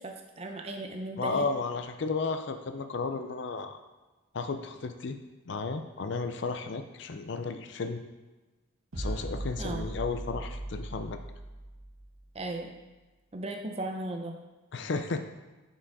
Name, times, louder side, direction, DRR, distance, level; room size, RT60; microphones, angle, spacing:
voice 1, 0.0-1.5 9.6-9.9 12.3-12.7 13.3-14.3, right 2 dB, 30° right, 3 dB, 0.6 m, -36 dB
voice 2, 1.2-3.8 4.3-5.2 5.5-8.0 9.0-11.2 14.7-15.2, left 4 dB, 55° left, 8 dB, 0.5 m, -33 dB
sound 1, 8.9-12.4, right 1 dB, 80° right, 1.5 m, -38 dB
6.0 x 4.6 x 4.8 m, 1.2 s
head